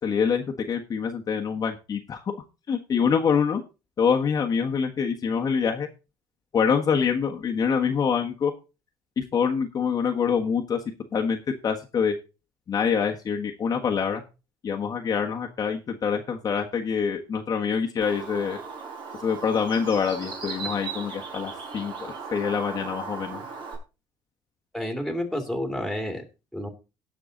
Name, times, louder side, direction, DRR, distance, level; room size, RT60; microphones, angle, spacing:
voice 1, 0.0-2.4 2.7-3.6 4.0-5.9 6.5-8.5 9.2-10.8 11.1-12.2 12.7-14.2 14.6-18.6 19.2-23.5, left 6 dB, 35° left, 1 dB, 1.4 m, -25 dB
Bird, 18.0-23.8, right 5 dB, 50° right, 4.5 m, -37 dB
voice 2, 24.7-26.2 26.5-26.7, left 1 dB, ahead, 5 dB, 2.6 m, -30 dB
17.5 x 5.9 x 3.9 m, 0.30 s
cardioid pair, 125°, 10 cm